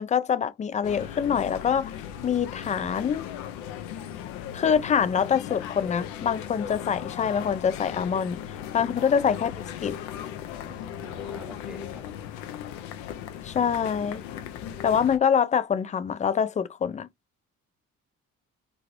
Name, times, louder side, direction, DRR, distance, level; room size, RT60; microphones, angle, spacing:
voice 1, 0.0-2.0 2.2-3.3 4.5-8.4 8.7-9.5 9.8-10.0 13.4-14.2 14.8-17.1, left 7 dB, 20° left, 0.3 m, -25 dB
sound 1, 0.8-15.2, left 10 dB, 75° left, 0.6 m, -37 dB
voice 2, 10.6-12.0, equal, ahead, 0.8 m, -45 dB
3.1 x 2.8 x 2.5 m
hypercardioid pair, 45°, 39 cm